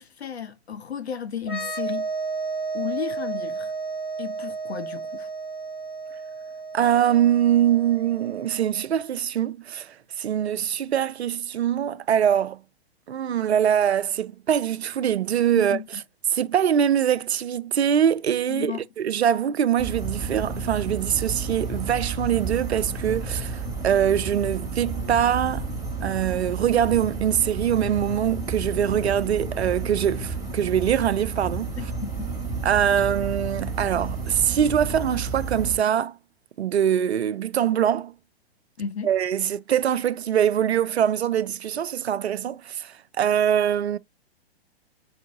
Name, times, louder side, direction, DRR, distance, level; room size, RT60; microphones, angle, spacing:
voice 1, 0.0-2.1 2.7-3.7 4.2-5.3 15.5-16.0 18.5-18.9 31.8-32.3 38.8-39.1, left 7 dB, 80° left, 0.9 m, -33 dB
sound 1, 1.4-8.9, right 4 dB, 55° left, 3.2 m, -33 dB
voice 2, 6.7-12.6 13.1-15.8 16.3-25.7 26.0-31.7 32.6-36.2 36.6-38.1 39.0-44.0, right 9 dB, 85° right, 0.5 m, -23 dB
sound 2, 19.8-35.8, right 3 dB, 10° right, 1.5 m, -31 dB
4.7 x 2.6 x 3.6 m
figure-of-eight pair, 115°, 32 cm